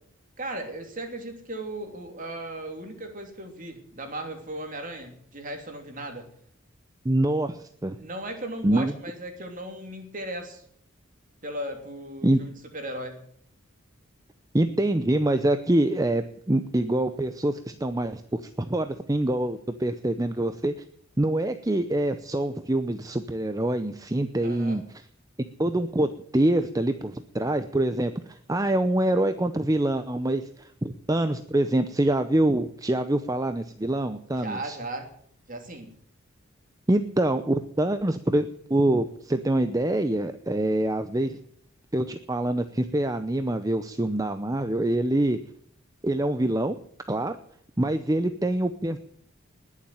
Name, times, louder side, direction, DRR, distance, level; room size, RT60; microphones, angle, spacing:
voice 1, 0.4-6.3 8.0-10.6 11.4-13.2 24.4-24.8 34.3-35.1 35.5-36.0, right 1 dB, 40° right, 5 dB, 3.1 m, -36 dB
voice 2, 7.0-8.0 8.6-8.9 12.2-12.4 14.5-20.7 21.2-24.8 25.6-34.8 36.9-41.4 41.9-45.4 46.0-46.8 47.1-47.4 47.8-49.0, right 1 dB, 15° right, 10 dB, 0.6 m, -25 dB
20.0 x 7.4 x 9.3 m, 0.63 s
head